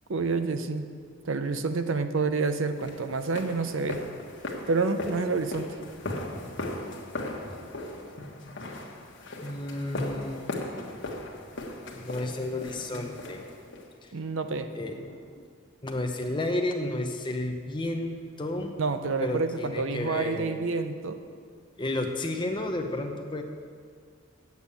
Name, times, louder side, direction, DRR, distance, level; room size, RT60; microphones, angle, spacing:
voice 1, 0.1-0.9 1.2-4.0 4.7-5.7 14.1-14.7 18.8-21.2, right 4 dB, 65° right, 9 dB, 0.6 m, -28 dB
sound 1, 2.8-13.9, left 2 dB, 60° left, 1.3 m, -38 dB
voice 2, 9.4-10.4 11.9-13.4 14.0-14.1 14.7-15.4 15.8-18.7 19.2-20.7 21.8-23.4, left 2 dB, 25° left, 3 dB, 0.8 m, -32 dB
8.2 x 7.2 x 8.4 m, 2.1 s
head